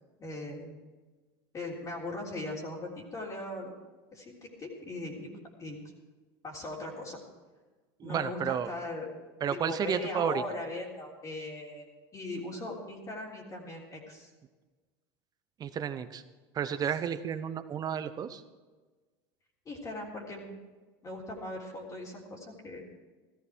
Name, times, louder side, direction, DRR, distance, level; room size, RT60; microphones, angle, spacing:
voice 1, 0.2-0.8 1.5-3.7 4.1-5.3 5.6-5.8 6.4-7.2 8.0-9.1 9.5-11.8 12.1-14.3 16.8-16.9 19.7-20.6 21.0-22.8, left 2 dB, 25° left, -4 dB, 3.4 m, -39 dB
voice 2, 8.0-8.7 9.4-10.4 15.6-16.2 16.5-18.4, right 8 dB, 30° right, 11 dB, 1.0 m, -32 dB
15.0 x 13.5 x 4.6 m, 1.3 s
supercardioid pair, 120°, 13 cm